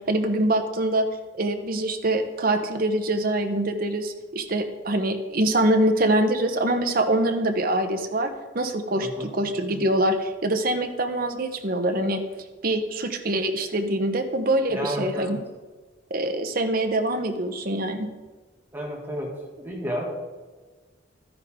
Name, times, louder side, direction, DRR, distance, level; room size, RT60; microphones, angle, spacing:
voice 1, 0.1-1.1 1.4-12.2 12.6-15.4 16.1-18.1, right 1 dB, 50° right, 6 dB, 0.9 m, -24 dB
voice 2, 9.0-9.3 14.7-15.4 18.7-20.0, equal, 10° right, -2 dB, 2.0 m, -31 dB
12.5 x 9.9 x 3.7 m, 1.3 s
head